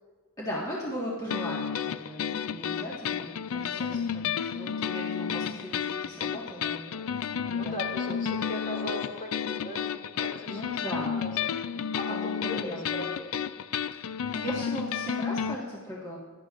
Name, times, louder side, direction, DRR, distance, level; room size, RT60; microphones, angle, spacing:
voice 1, 0.4-7.2 7.5-7.7 8.1-8.2 10.5-11.2 12.1-13.1 13.9-16.2, equal, 15° left, -6 dB, 1.5 m, -38 dB
sound 1, 1.3-15.6, left 7 dB, 70° left, 0.4 m, -32 dB
voice 2, 3.7-4.1 7.5-11.5 11.8-13.5, left 1 dB, 40° left, -2 dB, 2.3 m, -39 dB
18.0 x 11.0 x 2.5 m, 1.5 s
head